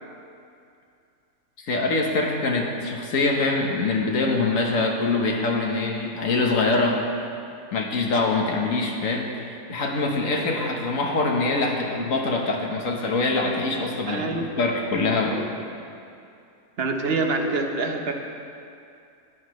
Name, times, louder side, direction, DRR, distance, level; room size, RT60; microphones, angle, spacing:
voice 1, 1.6-7.0 7.7-15.4, left 3 dB, 55° left, 0 dB, 1.4 m, -24 dB
voice 2, 14.1-14.5 15.3-15.5 16.8-18.1, right 3 dB, 50° right, 3 dB, 0.8 m, -25 dB
14.0 x 9.7 x 3.1 m, 2.5 s
omnidirectional pair, 1.7 m